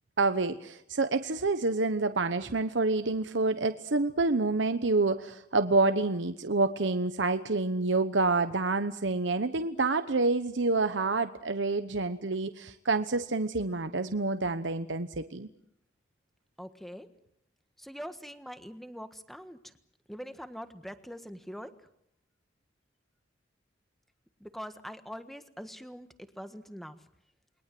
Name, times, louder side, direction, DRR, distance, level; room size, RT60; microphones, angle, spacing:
voice 1, 0.2-15.5, right 3 dB, 80° right, 9 dB, 1.1 m, -28 dB
voice 2, 16.6-17.1 17.8-19.7 20.1-21.7 24.4-27.0, equal, ahead, 9 dB, 1.5 m, -43 dB
29.0 x 22.0 x 7.8 m, 0.78 s
head